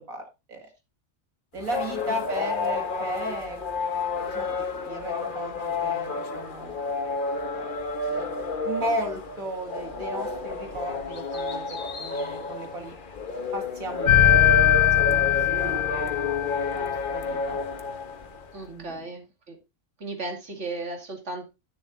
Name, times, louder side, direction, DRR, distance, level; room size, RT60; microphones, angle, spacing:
voice 1, 0.1-0.7 1.5-3.6 4.2-6.7 7.5-7.7 8.1-8.3 8.6-13.0 13.5-14.5 15.0-16.3 16.7-17.6 18.7-19.0, right 1 dB, 85° right, 3 dB, 2.6 m, -35 dB
sound 1, 1.6-18.6, left 3 dB, 40° left, 1.1 m, -30 dB
voice 2, 1.8-2.2 18.5-19.6 20.0-21.5, right 2 dB, 55° right, 2 dB, 2.8 m, -36 dB
sound 2, 14.1-16.9, left 12 dB, 60° left, 1.3 m, -20 dB
11.0 x 11.0 x 2.6 m, 0.25 s
omnidirectional pair, 1.4 m